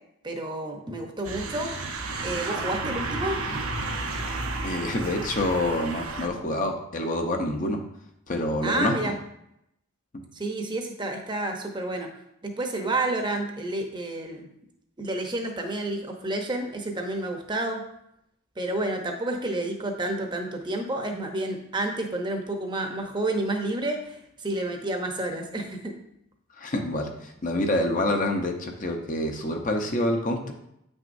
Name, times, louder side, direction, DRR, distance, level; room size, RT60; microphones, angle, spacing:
voice 1, 0.2-1.7 2.2-3.4 8.6-9.1 10.3-12.1 12.4-14.5 15.0-17.8 18.6-25.9, right 2 dB, 20° right, 3 dB, 0.8 m, -30 dB
sound 1, 1.2-6.3, right 3 dB, 85° right, 0.9 m, -32 dB
voice 2, 4.6-7.8 8.3-8.9 26.6-30.5, left 1 dB, 40° left, 3 dB, 0.7 m, -27 dB
8.6 x 6.1 x 2.6 m, 0.79 s
head